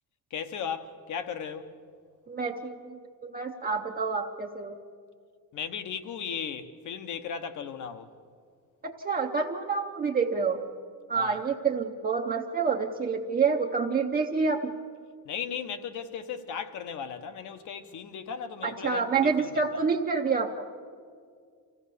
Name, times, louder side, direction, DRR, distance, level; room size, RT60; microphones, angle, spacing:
voice 1, 0.3-1.7 5.5-8.1 11.1-11.4 15.2-19.8, left 7 dB, 55° left, 1.2 m, -36 dB
voice 2, 2.3-4.8 8.8-10.6 11.1-14.7 18.6-20.6, right 5 dB, 25° right, 0.7 m, -28 dB
25.0 x 16.5 x 6.8 m
cardioid pair, 165°, 35 cm